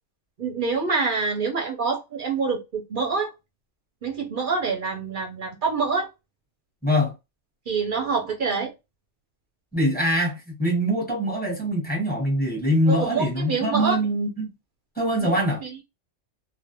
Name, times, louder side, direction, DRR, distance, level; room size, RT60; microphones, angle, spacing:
voice 1, 0.4-3.3 4.0-6.1 7.7-8.7 12.9-14.0 15.3-15.8, right 4 dB, 55° right, 0.6 m, -26 dB
voice 2, 6.8-7.1 9.7-14.5 15.0-15.6, equal, 10° left, 0.7 m, -23 dB
2.4 x 2.1 x 2.7 m
omnidirectional pair, 1.3 m